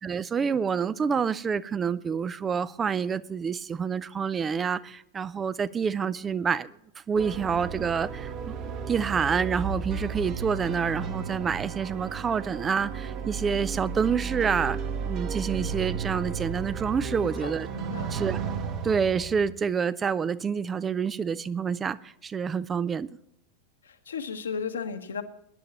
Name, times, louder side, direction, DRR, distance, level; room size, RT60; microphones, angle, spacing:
voice 1, 0.0-6.7 7.1-8.6 8.9-14.8 15.1-17.7 18.1-18.4 18.8-23.1, right 6 dB, 20° right, 0.4 m, -28 dB
sound 1, 7.2-19.5, right 5 dB, 40° right, 1.2 m, -34 dB
voice 2, 17.2-18.1 23.8-25.2, left 6 dB, 70° left, 1.2 m, -35 dB
21.5 x 10.5 x 3.0 m
figure-of-eight pair, 90°, 0 cm